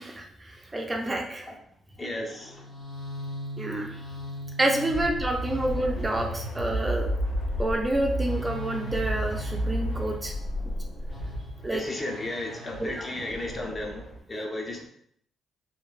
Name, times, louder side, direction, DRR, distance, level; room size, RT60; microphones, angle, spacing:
voice 1, 0.0-1.5 3.6-4.0 4.6-7.1 7.6-10.3 11.6-11.8 12.8-13.1, right 1 dB, 20° right, 1 dB, 0.4 m, -28 dB
voice 2, 2.0-2.6 11.7-14.0 14.3-14.9, left 1 dB, 30° left, 1 dB, 0.6 m, -34 dB
sound 1, 2.3-14.2, equal, 75° left, 1.4 m, -33 dB
2.9 x 2.3 x 2.4 m, 0.69 s
cardioid pair, 90°, 0 cm